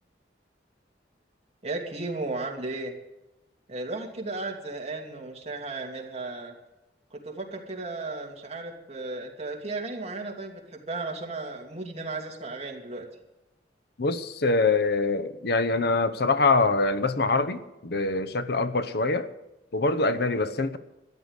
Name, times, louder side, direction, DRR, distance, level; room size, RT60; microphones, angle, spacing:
voice 1, 1.6-2.9 3.7-6.5 7.1-13.1, right 3 dB, 35° right, 1 dB, 2.8 m, -35 dB
voice 2, 14.0-19.3 19.7-20.8, left 3 dB, 65° left, 12 dB, 0.9 m, -24 dB
13.5 x 11.0 x 8.1 m, 0.96 s
head